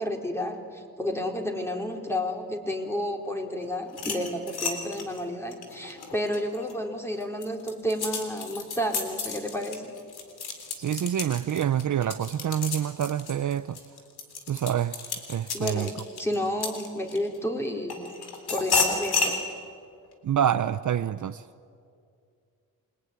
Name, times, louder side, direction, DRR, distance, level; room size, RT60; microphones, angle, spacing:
voice 1, 0.0-9.9 15.5-18.1 18.5-19.4, equal, 5° left, 4.2 m, -31 dB
sound 1, 3.9-6.7 7.2-17.4 17.9-19.4, left 4 dB, 75° left, 3.8 m, -32 dB
voice 2, 10.8-13.8 14.5-15.0 15.3-15.9 20.2-21.4, right 10 dB, 50° right, 0.7 m, -27 dB
28.0 x 21.5 x 9.7 m
cardioid pair, 75°, 39 cm